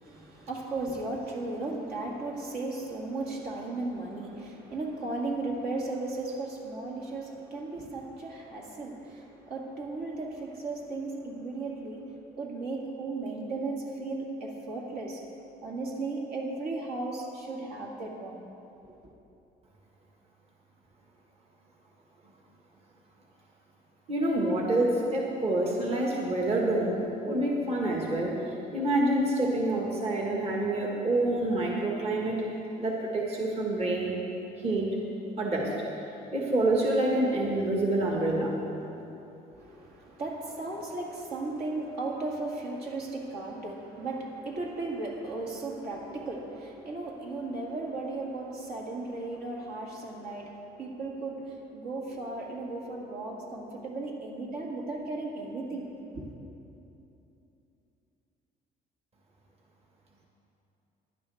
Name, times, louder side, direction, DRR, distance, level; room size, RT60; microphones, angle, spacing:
voice 1, 0.0-12.1 12.4-15.2 15.6-18.5 18.8-18.9 39.5-56.2, right 2 dB, 65° right, -2 dB, 2.1 m, -36 dB
voice 2, 24.1-32.4 32.8-34.2 34.6-35.0 35.4-35.7 36.3-38.6, right 1 dB, 35° right, -2 dB, 1.8 m, -27 dB
16.5 x 11.0 x 3.6 m, 2.9 s
cardioid pair, 110°, 17 cm